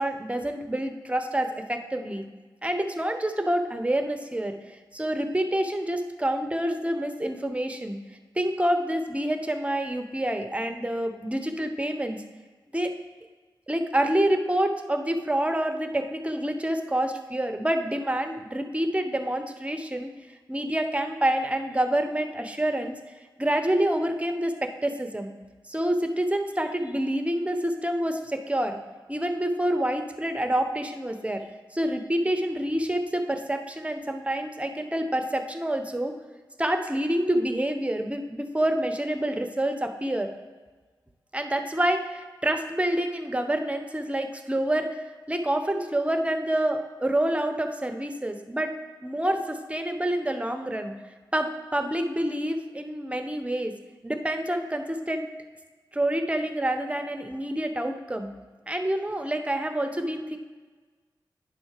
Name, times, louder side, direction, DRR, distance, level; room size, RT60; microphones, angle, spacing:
voice 1, 0.0-2.3 2.6-8.0 8.4-12.2 12.7-12.9 13.7-20.1 20.5-23.0 23.4-25.3 25.7-28.8 29.1-31.4 31.7-36.1 36.6-40.3 41.3-48.7 49.0-50.9 51.3-53.7 54.0-55.3 55.9-58.3 58.7-60.4, right 1 dB, 15° right, 6 dB, 1.0 m, -27 dB
9.3 x 4.2 x 6.6 m, 1.4 s
cardioid pair, 50°, 8 cm